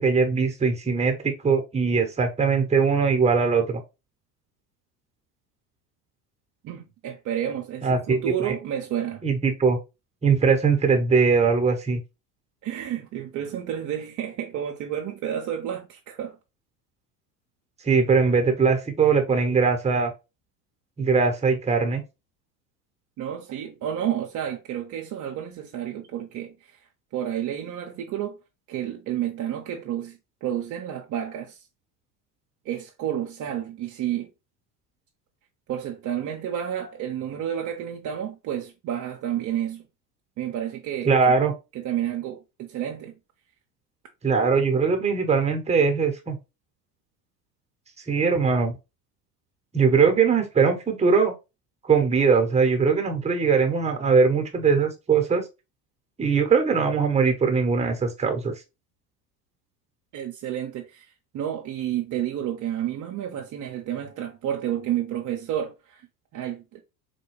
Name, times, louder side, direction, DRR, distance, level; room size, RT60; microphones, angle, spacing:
voice 1, 0.0-3.8 7.8-8.5 9.2-9.8 10.2-12.0 17.8-20.1 21.0-22.0 41.1-41.5 44.2-46.4 48.1-48.8 49.7-51.3 51.8-55.4 56.2-58.5, right 5 dB, 15° right, 0.9 m, -21 dB
voice 2, 6.6-9.2 12.6-16.4 23.2-28.4 28.7-31.7 32.6-34.3 35.7-39.8 40.4-41.3 41.7-43.1 60.1-66.0 66.3-66.8, right 10 dB, 40° right, 0.6 m, -30 dB
4.2 x 2.2 x 3.0 m
hypercardioid pair, 80°, 47 cm